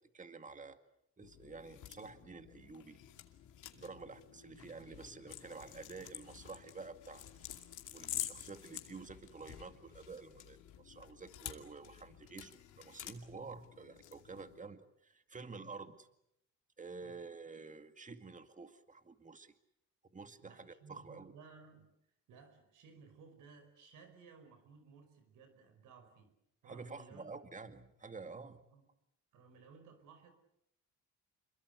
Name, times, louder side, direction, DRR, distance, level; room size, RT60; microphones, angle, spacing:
voice 1, 0.1-0.8 1.2-3.0 3.7-7.6 7.9-16.1 16.8-19.5 20.1-21.3 26.6-28.6, right 4 dB, 25° right, 9 dB, 2.1 m, -50 dB
sound 1, 1.2-14.6, left 11 dB, 80° left, 2.5 m, -49 dB
voice 2, 20.4-21.9 22.3-26.3 26.6-27.3 28.7-28.9 29.3-30.3, right 5 dB, 85° right, 9 dB, 5.2 m, -58 dB
27.0 x 22.5 x 8.1 m, 0.79 s
cardioid pair, 90°, 30 cm